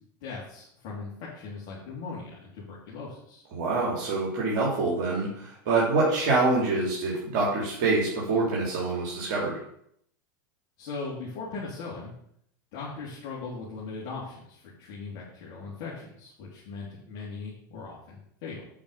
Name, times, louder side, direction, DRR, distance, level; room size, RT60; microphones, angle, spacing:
voice 1, 0.2-3.4 10.8-12.1 12.7-18.7, left 4 dB, 60° left, -7 dB, 3.4 m, -39 dB
voice 2, 3.5-9.6, right 3 dB, 60° right, -5 dB, 3.4 m, -26 dB
8.7 x 5.4 x 6.8 m, 0.70 s
hypercardioid pair, 100°, 11 cm